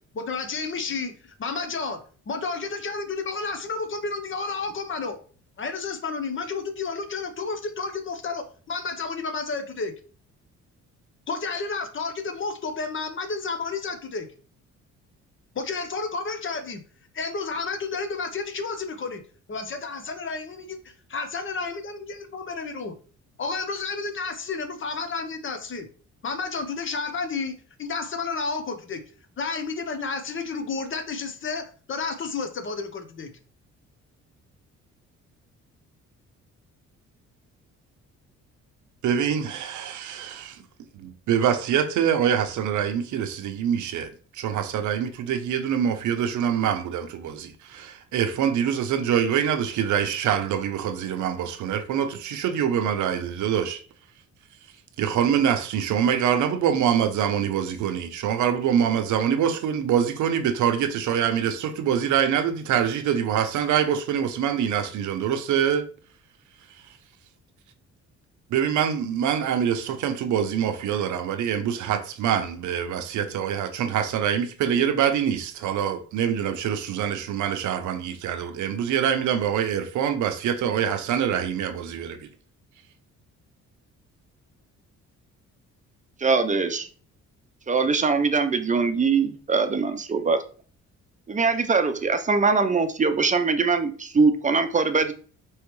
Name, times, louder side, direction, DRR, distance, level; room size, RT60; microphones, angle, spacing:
voice 1, 0.1-2.0 2.3-5.2 5.6-9.9 11.3-14.3 15.5-16.8 17.1-19.2 19.5-22.9 23.4-25.9 26.2-27.5 27.8-29.0 29.4-33.3, left 4 dB, 40° left, 0.8 m, -31 dB
voice 2, 39.0-40.6 40.9-53.8 55.0-65.9 68.5-82.3, right 8 dB, 75° right, 0.7 m, -25 dB
voice 3, 86.2-86.9 87.7-90.4 91.3-95.1, right 4 dB, 25° right, 0.6 m, -22 dB
4.6 x 3.1 x 3.1 m
cardioid pair, 90°, 30 cm